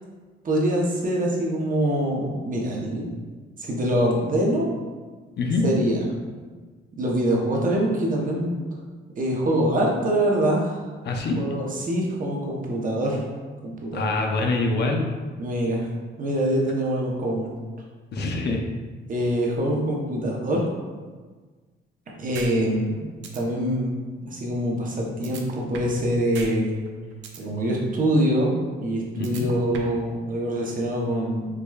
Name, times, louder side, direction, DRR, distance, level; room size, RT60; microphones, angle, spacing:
voice 1, 0.4-3.1 3.6-4.7 5.6-6.0 7.0-8.6 9.2-10.8 11.4-13.2 13.6-14.1 15.4-15.9 16.2-17.5 19.1-20.6 22.2-23.9 24.3-26.7 27.4-28.6 28.8-31.5, right 1 dB, 45° right, -2 dB, 0.8 m, -24 dB
voice 2, 11.0-11.4 13.9-15.0 18.1-18.6 29.2-29.5, left 3 dB, 60° left, 2 dB, 0.5 m, -25 dB
sound 1, 22.3-22.5 22.9-23.0 23.2-23.4 25.2-26.0 26.3-26.5 26.9-27.4 29.2-30.0, right 5 dB, 70° right, 0.5 m, -37 dB
4.7 x 2.2 x 2.3 m, 1.4 s
cardioid pair, 90°, 20 cm